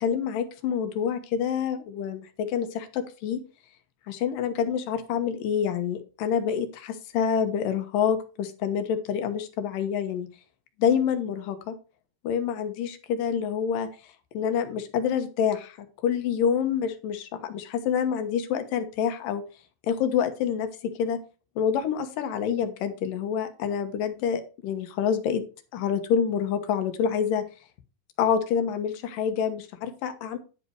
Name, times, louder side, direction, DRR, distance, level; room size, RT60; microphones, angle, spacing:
voice 1, 0.0-3.4 4.1-10.3 10.8-11.8 12.2-13.9 14.3-19.4 19.8-21.2 21.6-25.4 25.7-27.4 28.2-30.4, left 7 dB, 75° left, 8 dB, 2.8 m, -27 dB
10.5 x 5.5 x 4.6 m, 0.34 s
omnidirectional pair, 4.0 m